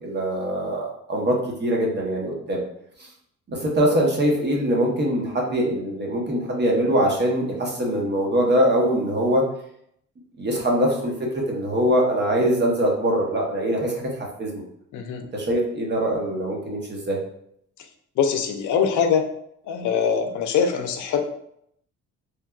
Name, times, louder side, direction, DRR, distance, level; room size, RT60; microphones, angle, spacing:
voice 1, 0.0-2.6 3.5-9.4 10.4-11.1 11.5-14.1 14.4-14.6 15.3-17.2, equal, 35° right, -1 dB, 0.9 m, -23 dB
voice 2, 18.2-19.3 19.7-21.2, left 7 dB, 75° left, 5 dB, 0.5 m, -22 dB
3.3 x 2.2 x 2.3 m, 0.71 s
cardioid pair, 90°, 30 cm